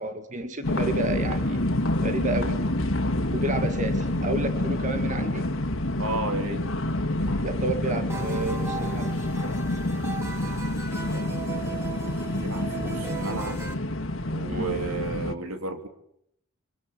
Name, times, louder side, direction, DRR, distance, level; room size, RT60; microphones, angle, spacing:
voice 1, 0.0-1.7 2.0-2.6 3.3-5.5 7.2-9.1 14.5-14.8, right 2 dB, 35° right, 7 dB, 2.1 m, -31 dB
sound 1, 0.6-15.3, left 1 dB, 65° left, 2.0 m, -28 dB
voice 2, 6.0-6.6 11.1-11.3 12.4-13.6 14.3-15.9, right 2 dB, 80° right, 6 dB, 3.3 m, -32 dB
sound 2, 8.1-13.7, right 5 dB, 10° right, 2.5 m, -37 dB
24.5 x 24.5 x 8.5 m, 0.73 s
head